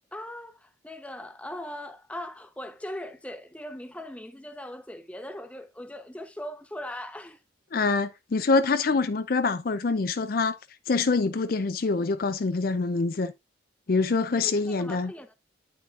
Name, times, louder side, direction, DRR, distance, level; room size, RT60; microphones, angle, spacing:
voice 1, 0.1-7.4 14.4-15.4, left 1 dB, 5° left, 0.7 m, -40 dB
voice 2, 7.7-10.6 10.9-13.3 13.9-15.1, left 4 dB, 50° left, 0.5 m, -25 dB
9.2 x 5.9 x 2.5 m
head